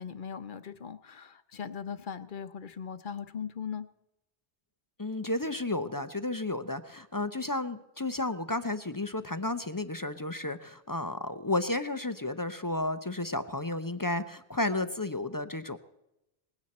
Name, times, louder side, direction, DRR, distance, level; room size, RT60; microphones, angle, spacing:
voice 1, 0.0-3.9, left 7 dB, 50° left, 11 dB, 0.9 m, -39 dB
voice 2, 5.0-15.8, left 2 dB, 25° left, 11 dB, 0.5 m, -32 dB
20.0 x 16.0 x 4.3 m, 0.89 s
omnidirectional pair, 1.1 m